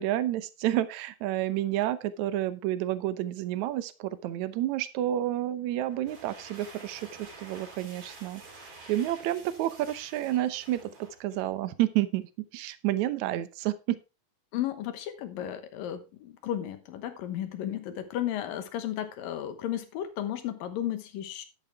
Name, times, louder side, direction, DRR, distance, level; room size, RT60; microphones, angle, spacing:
voice 1, 0.0-8.4 8.9-12.2 12.5-14.0, right 13 dB, 75° right, 14 dB, 1.8 m, -30 dB
sound 1, 5.9-11.6, right 3 dB, 45° right, 4.5 m, -49 dB
voice 2, 14.5-21.4, left 11 dB, 75° left, 10 dB, 2.7 m, -34 dB
11.5 x 8.8 x 3.4 m, 0.27 s
omnidirectional pair, 4.2 m